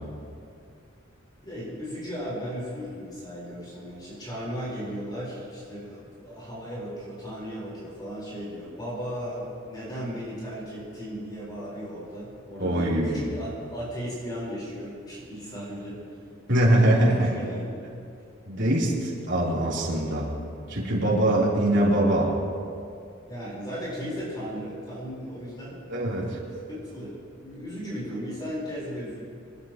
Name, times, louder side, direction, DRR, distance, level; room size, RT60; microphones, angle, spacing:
voice 1, 1.4-16.0 16.8-17.8 23.3-25.8 26.7-27.1 27.4-29.2, equal, 20° left, -7 dB, 4.5 m, -36 dB
voice 2, 12.6-13.2 16.5-17.3 18.5-20.3 20.7-22.3 25.9-26.3, right 1 dB, 60° right, -6 dB, 3.8 m, -22 dB
26.5 x 12.5 x 3.1 m, 2.4 s
head